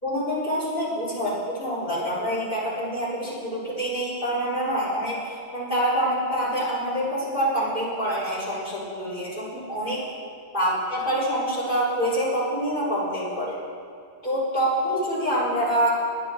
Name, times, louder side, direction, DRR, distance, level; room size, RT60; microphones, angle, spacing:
voice 1, 0.0-10.0 10.5-13.6 14.2-15.9, equal, 50° left, -8 dB, 4.7 m, -26 dB
20.5 x 9.7 x 4.7 m, 2.5 s
omnidirectional pair, 1.2 m